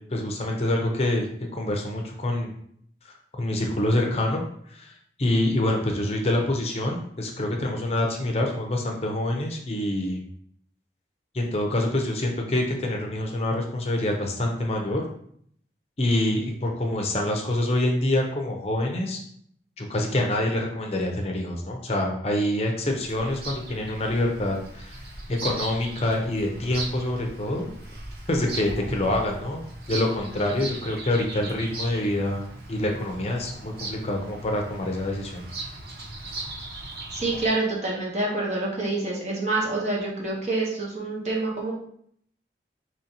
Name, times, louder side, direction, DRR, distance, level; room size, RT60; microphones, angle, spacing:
voice 1, 0.1-1.3 1.5-2.5 3.0-10.2 11.3-15.0 16.0-19.2 19.8-25.0 25.3-27.7 28.3-29.6 29.9-35.5, left 1 dB, 35° left, 1 dB, 0.6 m, -26 dB
Bird vocalization bird call bird song, 22.8-37.5, right 2 dB, 55° right, 0.8 m, -38 dB
voice 2, 37.2-41.7, right 2 dB, 40° right, -3 dB, 1.1 m, -27 dB
5.2 x 3.1 x 2.9 m, 0.66 s
head